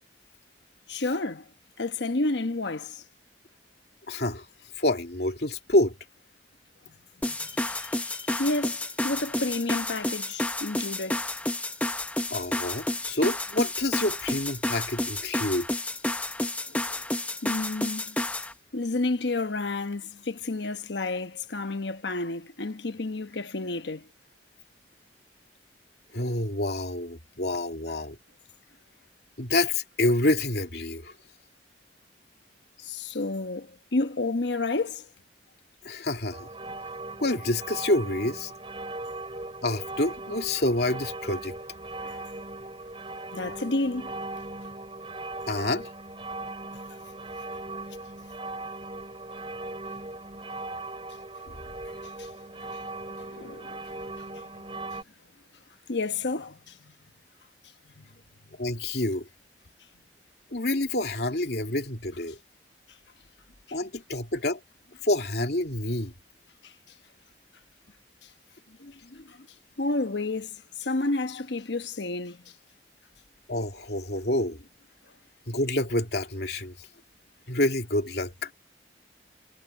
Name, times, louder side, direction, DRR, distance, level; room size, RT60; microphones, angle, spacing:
voice 1, 0.9-1.4 1.8-3.0 7.3-11.2 16.7-17.0 17.4-18.2 18.7-24.1 32.8-35.1 42.0-42.2 43.3-44.1 52.2-52.3 53.3-53.8 54.2-54.4 55.9-56.9 58.0-58.1 66.6-66.7 69.8-72.4, left 2 dB, 85° left, 1.1 m, -31 dB
voice 2, 4.1-4.4 4.8-5.9 12.3-15.7 26.1-28.2 29.4-31.1 35.8-36.5 37.2-38.5 39.6-41.5 45.5-45.9 51.5-51.6 58.6-59.3 60.5-62.4 63.7-64.6 65.0-66.1 68.7-69.2 73.5-74.6 75.5-76.9 77.5-78.5, left 1 dB, 65° left, 2.8 m, -28 dB
sound 1, 7.2-18.5, left 1 dB, 10° left, 0.8 m, -30 dB
sound 2, 36.3-55.0, right 2 dB, 30° right, 6.8 m, -39 dB
head